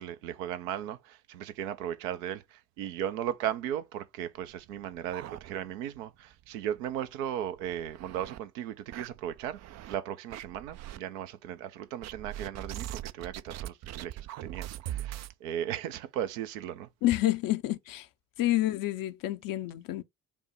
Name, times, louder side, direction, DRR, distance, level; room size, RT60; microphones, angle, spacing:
voice 1, 0.0-9.6 9.9-16.9, right 10 dB, 70° right, 0.7 m, -36 dB
sound 1, 4.5-6.0 6.3-6.4 6.8-6.9 7.5-8.4 8.9-10.0 10.3-11.0 12.0-15.3, right 13 dB, 40° right, 0.4 m, -41 dB
voice 2, 17.0-18.1 18.4-20.0, left 15 dB, 50° left, 0.7 m, -28 dB
5.2 x 2.1 x 4.6 m
figure-of-eight pair, 45°, 43 cm